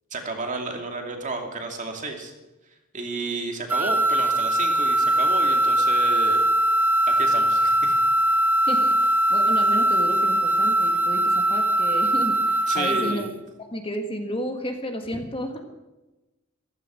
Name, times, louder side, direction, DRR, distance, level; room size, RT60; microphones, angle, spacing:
voice 1, 0.1-2.3 2.9-6.4 7.1-7.9 12.7-13.3 15.1-15.2, right 3 dB, 35° right, 3 dB, 2.5 m, -32 dB
sound 1, 3.7-13.3, right 1 dB, 10° right, 0.7 m, -21 dB
voice 2, 8.7-13.3 13.7-15.6, equal, 25° left, 4 dB, 1.5 m, -32 dB
15.5 x 15.0 x 6.3 m, 1.1 s
head